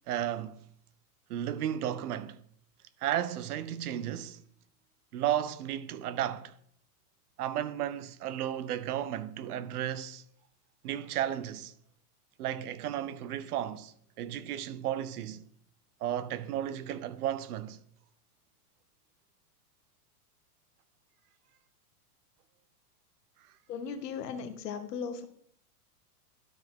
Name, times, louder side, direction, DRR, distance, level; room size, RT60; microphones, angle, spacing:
voice 1, 0.1-0.6 1.3-2.4 3.0-4.4 5.1-6.5 7.4-10.2 10.8-11.7 12.4-15.4 16.0-17.8, right 11 dB, 70° right, 0.8 m, -34 dB
voice 2, 23.7-25.2, left 6 dB, 85° left, 1.4 m, -37 dB
12.5 x 5.1 x 3.7 m
supercardioid pair, 170°, 47 cm